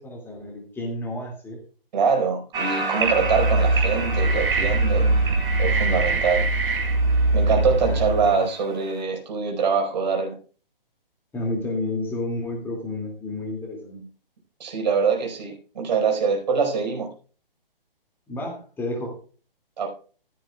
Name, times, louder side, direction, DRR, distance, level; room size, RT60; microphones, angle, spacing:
voice 1, 0.0-1.6 7.8-8.5 11.3-14.0 18.3-19.2, left 2 dB, 5° left, -1 dB, 2.5 m, -31 dB
voice 2, 1.9-5.1 5.6-6.5 7.3-10.3 14.6-17.1 19.8-19.9, right 5 dB, 50° right, 2 dB, 5.1 m, -24 dB
sound 1, 2.5-9.0, right 3 dB, 15° right, 4.1 m, -31 dB
sound 2, 3.0-8.3, right 2 dB, 70° right, 1.8 m, -22 dB
15.5 x 13.0 x 2.4 m, 0.39 s
figure-of-eight pair, 145°, 29 cm